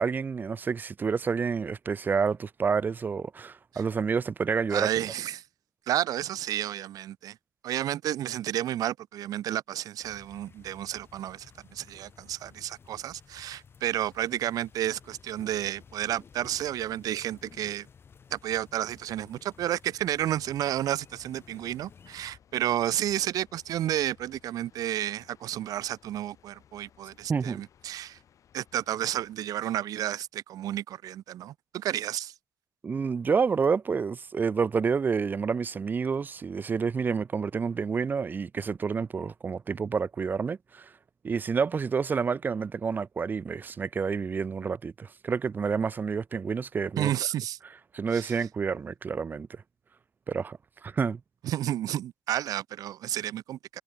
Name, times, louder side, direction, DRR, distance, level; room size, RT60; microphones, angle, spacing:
voice 1, 0.0-4.9 27.3-27.6 32.8-40.9 41.2-47.1 47.9-49.6 50.3-51.2, right 5 dB, 30° right, 0.5 m, -29 dB
voice 2, 4.7-5.4 5.9-7.4 7.6-17.9 18.3-28.2 28.5-32.3 47.0-47.6 48.1-48.3 51.4-53.8, right 12 dB, 75° right, 0.6 m, -31 dB
sound 1, 10.0-22.4, left 6 dB, 40° left, 2.0 m, -54 dB
sound 2, 20.9-29.4, left 9 dB, 55° left, 6.0 m, -60 dB
cardioid pair, 135°, 6 cm